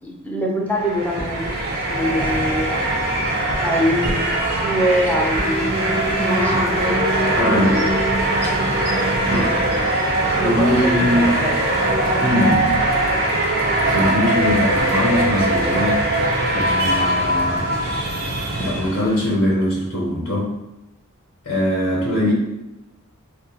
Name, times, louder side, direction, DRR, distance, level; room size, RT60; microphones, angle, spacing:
voice 1, 0.0-3.0 3.6-5.8 6.2-7.8 9.3-9.6 10.0-11.6, equal, 5° left, -2 dB, 0.4 m, -25 dB
sound 1, 0.7-19.2, right 1 dB, 50° right, 0.5 m, -21 dB
sound 2, 4.9-12.3, equal, 80° right, 0.8 m, -28 dB
voice 2, 7.4-7.8 9.2-9.5 10.4-11.4 12.2-12.8 13.8-16.0 16.5-17.7 18.6-20.5 21.4-22.3, left 1 dB, 65° left, -5 dB, 0.6 m, -21 dB
2.3 x 2.1 x 2.8 m, 0.93 s
head